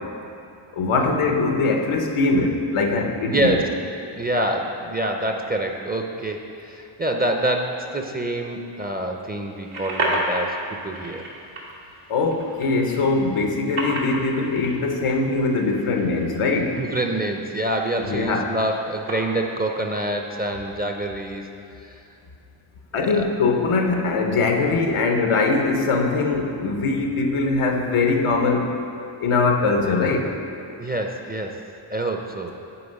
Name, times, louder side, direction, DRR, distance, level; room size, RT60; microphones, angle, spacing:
voice 1, 0.7-3.6 12.1-16.8 18.0-18.5 22.9-28.7 29.2-30.3, left 3 dB, 90° left, 3 dB, 0.8 m, -21 dB
voice 2, 3.3-3.7 4.1-11.2 16.8-21.5 21.8-22.0 23.0-23.2 30.8-31.6 31.9-32.5, right 1 dB, 20° right, 2 dB, 0.5 m, -26 dB
sound 1, 9.5-20.1, right 1 dB, 85° right, 1.4 m, -33 dB
7.0 x 4.4 x 5.3 m, 2.7 s
cardioid pair, 75°, 49 cm